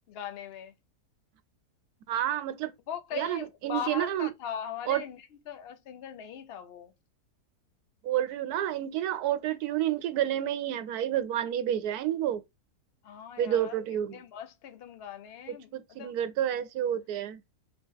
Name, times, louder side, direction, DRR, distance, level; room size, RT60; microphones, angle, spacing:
voice 1, 0.1-0.7 2.9-6.9 13.0-13.8 14.1-15.7 16.0-16.1, left 8 dB, 60° left, 0.6 m, -40 dB
voice 2, 2.1-2.7 3.1-4.3 4.9-5.0 8.0-12.4 13.4-14.2 15.5-17.4, right 11 dB, 80° right, 1.1 m, -29 dB
3.9 x 3.0 x 3.6 m
omnidirectional pair, 1.7 m